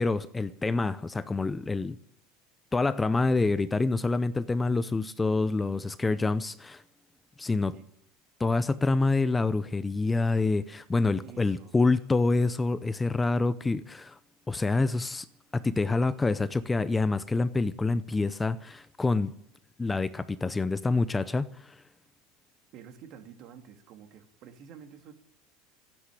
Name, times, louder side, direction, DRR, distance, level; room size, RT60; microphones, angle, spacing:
voice 1, 0.0-2.0 2.7-6.8 7.4-7.7 8.4-14.2 14.5-15.3 15.5-19.3 19.8-21.7, left 3 dB, 15° left, 0.6 m, -27 dB
voice 2, 11.2-11.8 22.7-25.1, right 7 dB, 55° right, 2.4 m, -49 dB
13.5 x 9.9 x 9.9 m
supercardioid pair, 115°, 0 cm